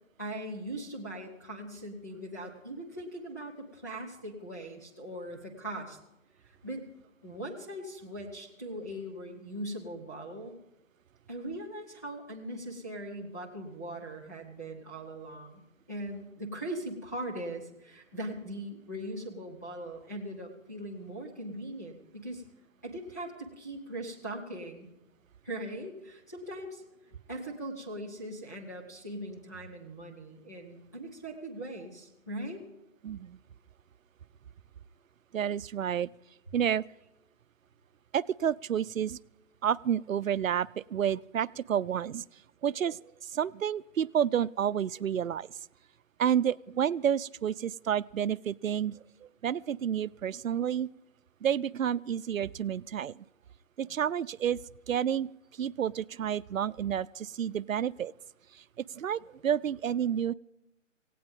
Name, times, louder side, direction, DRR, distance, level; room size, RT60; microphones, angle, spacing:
voice 1, 0.2-6.0 6.6-6.8 7.2-10.5 11.3-22.4 22.8-24.9 25.4-26.8 27.3-32.6, right 1 dB, 15° left, -6 dB, 0.9 m, -40 dB
voice 2, 33.0-33.4 35.3-36.1 36.5-36.8 38.1-39.2 39.6-42.2 42.6-43.0 43.3-45.5 46.2-49.0 49.4-50.9 51.4-53.1 53.8-54.6 54.9-55.3 55.6-58.1 58.8-60.3, right 9 dB, 90° right, 18 dB, 0.6 m, -30 dB
18.0 x 17.0 x 3.7 m, 0.92 s
hypercardioid pair, 180°, 39 cm